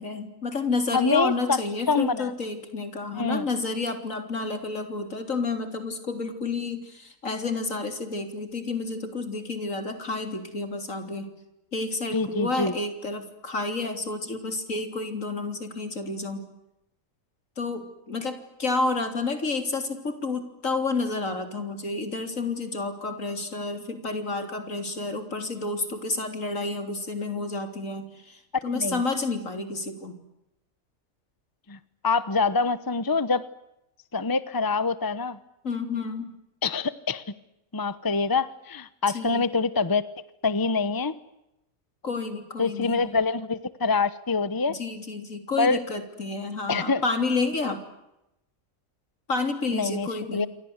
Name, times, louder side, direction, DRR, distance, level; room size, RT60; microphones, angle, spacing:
voice 1, 0.0-11.3 11.7-16.4 17.6-30.1 35.6-36.3 39.1-39.5 42.0-43.0 44.7-47.8 49.3-50.5, left 3 dB, 65° left, 7 dB, 4.1 m, -30 dB
voice 2, 0.9-1.6 1.9-2.3 3.1-3.5 12.1-12.7 28.7-29.0 31.7-33.4 34.1-35.4 36.6-37.2 37.7-40.0 40.4-41.1 42.6-44.8 45.6-45.8 46.7-47.0 49.7-50.5, left 4 dB, 20° left, 15 dB, 0.9 m, -25 dB
28.5 x 23.5 x 8.2 m, 0.88 s
omnidirectional pair, 1.4 m